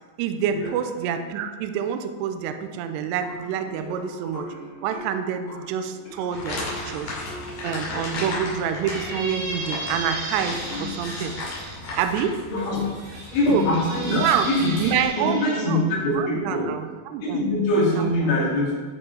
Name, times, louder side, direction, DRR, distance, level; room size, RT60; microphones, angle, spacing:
voice 1, 0.2-4.5 4.8-7.2 7.6-11.3 12.0-12.4 13.4-13.7 14.1-14.5 14.8-15.8 16.2-17.4 18.0-18.3, right 8 dB, 85° right, 8 dB, 2.6 m, -27 dB
sound 1, 3.2-8.0, equal, 35° left, 3.0 m, -40 dB
sound 2, 6.3-15.0, left 2 dB, 65° left, 4.1 m, -35 dB
Squeak, 8.7-11.7 12.6-15.6, right 2 dB, 50° right, 3.1 m, -35 dB
voice 2, 10.7-11.3 12.5-12.9 13.3-14.8 15.2-16.7 17.2-18.7, left 1 dB, 80° left, -6 dB, 5.0 m, -23 dB
12.0 x 5.4 x 4.8 m, 1.5 s
omnidirectional pair, 5.2 m